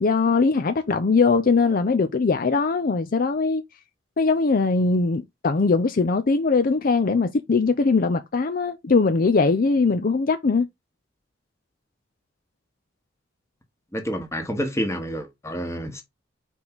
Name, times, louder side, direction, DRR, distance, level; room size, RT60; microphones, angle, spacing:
voice 1, 0.0-3.6 4.2-10.7, left 4 dB, 50° left, 0.5 m, -21 dB
voice 2, 13.9-16.0, equal, 15° left, 1.6 m, -28 dB
5.3 x 4.6 x 3.9 m
head